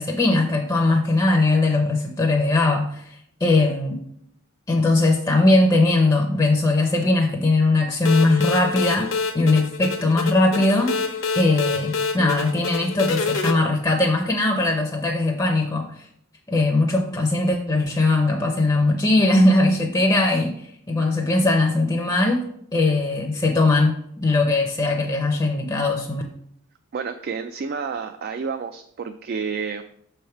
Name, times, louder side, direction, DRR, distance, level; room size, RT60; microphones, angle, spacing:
voice 1, 0.0-4.0 4.7-16.0 16.5-22.4 22.7-26.2, left 2 dB, 20° left, 1 dB, 0.6 m, -20 dB
sound 1, 8.0-13.5, left 4 dB, 65° left, 0.9 m, -26 dB
voice 2, 26.9-29.8, right 5 dB, 45° right, 7 dB, 0.3 m, -30 dB
6.2 x 3.4 x 5.7 m, 0.69 s
head